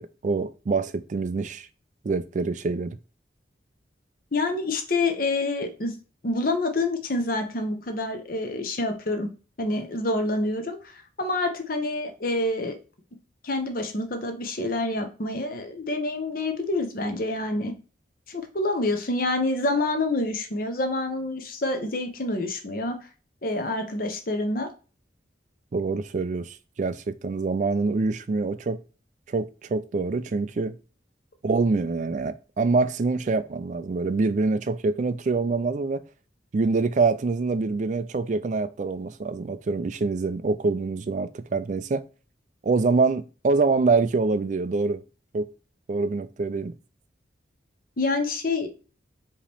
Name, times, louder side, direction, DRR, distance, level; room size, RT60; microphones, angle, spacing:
voice 1, 0.0-1.7 2.0-3.0 25.7-28.8 29.3-30.7 31.4-36.0 36.5-42.0 42.6-45.0 45.3-45.5 45.9-46.7, right 3 dB, 40° right, 0.3 m, -25 dB
voice 2, 4.3-6.0 6.2-9.3 9.6-12.8 13.4-17.7 18.3-23.0 23.4-24.7 48.0-48.7, left 2 dB, 50° left, 0.9 m, -27 dB
4.8 x 2.9 x 3.3 m
head